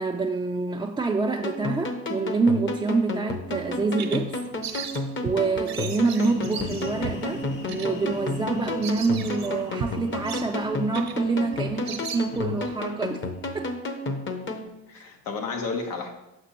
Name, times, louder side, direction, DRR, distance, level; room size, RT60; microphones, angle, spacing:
voice 1, 0.0-4.4 5.2-13.2 13.5-13.7, right 4 dB, 15° right, 0 dB, 0.3 m, -26 dB
sound 1, 1.4-14.7, left 2 dB, 35° left, 0.8 m, -32 dB
Bird vocalization bird call bird song, 3.5-12.7, right 7 dB, 55° right, 0.7 m, -38 dB
sound 2, 6.1-13.7, left 3 dB, 70° left, 1.0 m, -41 dB
voice 2, 11.6-12.0 12.3-12.4 14.1-14.2 14.9-16.1, left 4 dB, 90° left, 3 dB, 1.0 m, -33 dB
6.0 x 5.9 x 2.9 m, 0.94 s
cardioid pair, 95°, 34 cm